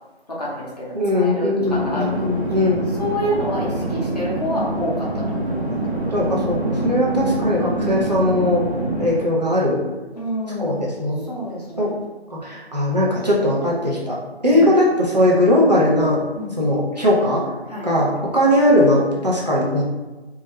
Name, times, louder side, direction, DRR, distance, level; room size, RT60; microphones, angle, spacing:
voice 1, 0.3-5.7 10.1-10.9 11.3-11.9 14.5-14.6 16.3-16.5 17.7-17.9, equal, 40° left, -6 dB, 0.6 m, -28 dB
voice 2, 0.9-2.8 6.1-8.6 9.0-9.8 10.6-11.3 11.8-11.9 12.3-14.2 14.4-16.2 16.6-17.4 17.8-19.8, left 1 dB, 40° right, -6 dB, 0.4 m, -19 dB
sound 1, 1.6-9.2, right 1 dB, 80° right, 0.8 m, -25 dB
2.3 x 2.0 x 2.8 m, 1.2 s
figure-of-eight pair, 170°, 32 cm